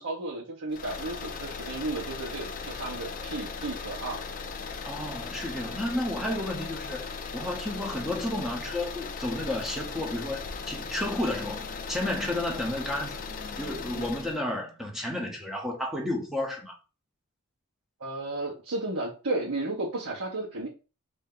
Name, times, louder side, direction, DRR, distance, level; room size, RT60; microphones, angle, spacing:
voice 1, 0.0-4.2 13.9-14.1 18.0-20.7, right 2 dB, 65° right, 1.1 m, -33 dB
sound 1, 0.7-14.4, left 5 dB, 40° left, 0.4 m, -38 dB
voice 2, 4.8-13.2 13.6-16.8, left 1 dB, ahead, 0.8 m, -32 dB
sound 2, 9.6-15.9, left 2 dB, 45° right, 1.4 m, -53 dB
3.4 x 2.7 x 3.8 m
head